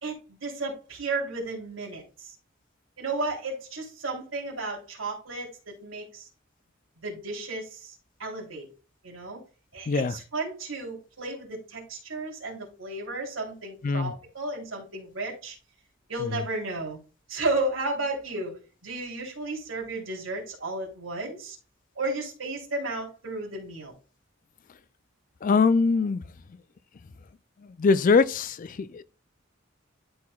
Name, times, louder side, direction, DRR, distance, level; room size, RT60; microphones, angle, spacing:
voice 1, 0.0-2.3 3.0-6.3 7.0-8.7 9.0-9.4 9.7-15.6 16.1-17.0 17.3-21.6 21.9-23.9, right 2 dB, 80° right, 3.2 m, -33 dB
voice 2, 25.4-26.2 27.6-29.0, left 4 dB, 40° left, 0.4 m, -23 dB
12.5 x 4.7 x 2.3 m
head